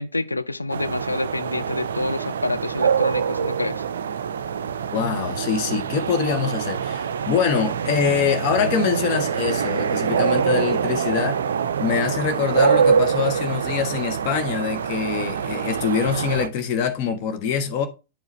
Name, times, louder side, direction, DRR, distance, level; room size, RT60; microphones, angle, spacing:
voice 1, 0.0-3.8, left 2 dB, 90° left, 0.3 m, -28 dB
sound 1, 0.7-16.5, right 7 dB, 70° right, 0.4 m, -24 dB
voice 2, 4.9-11.4 11.8-17.9, left 7 dB, 45° left, 1.0 m, -24 dB
9.0 x 4.8 x 3.0 m
figure-of-eight pair, 95°, 0 cm